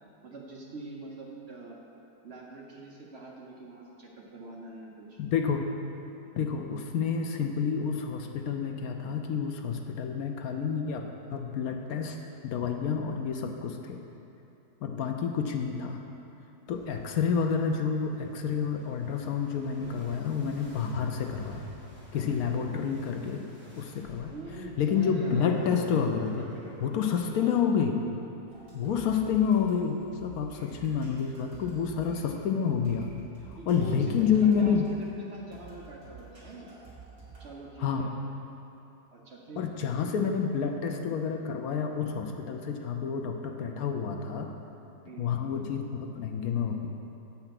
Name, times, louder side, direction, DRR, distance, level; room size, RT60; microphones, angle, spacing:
voice 1, 0.0-1.8 2.2-5.2 14.9-15.1 22.5-22.8 24.3-25.5 27.3-27.5 28.8-29.1 33.6-36.7 37.4-38.1 39.1-39.6 43.5-43.8 45.0-45.3, right 2 dB, 50° right, -2 dB, 1.0 m, -44 dB
voice 2, 5.2-5.7 6.3-12.2 12.4-14.0 14.8-16.0 16.7-21.7 22.1-23.4 23.8-24.3 24.8-26.5 26.8-28.0 28.7-33.1 33.7-34.9 37.8-38.1 39.6-44.5 45.2-46.9, left 6 dB, 75° left, 4 dB, 1.1 m, -29 dB
sound 1, 16.7-26.9, equal, 10° right, 1.3 m, -49 dB
sound 2, 28.5-37.5, right 4 dB, 70° right, 2.6 m, -51 dB
7.9 x 5.8 x 5.8 m, 2.8 s
omnidirectional pair, 1.7 m